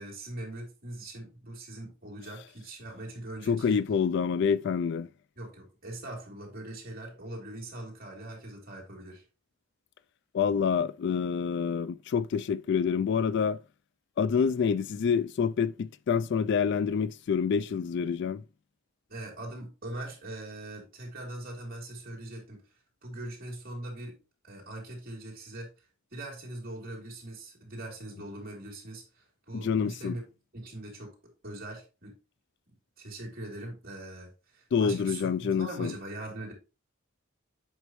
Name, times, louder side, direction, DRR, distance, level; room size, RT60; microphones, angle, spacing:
voice 1, 0.0-3.8 5.4-9.2 19.1-22.6 23.0-24.2 24.4-25.7 26.1-30.2 30.5-32.1 33.0-36.5, right 1 dB, 45° right, 3.0 m, -41 dB
voice 2, 3.5-5.1 10.3-13.6 14.2-18.4 29.5-30.2 34.7-35.9, left 6 dB, 55° left, 0.3 m, -27 dB
8.0 x 5.2 x 3.1 m
head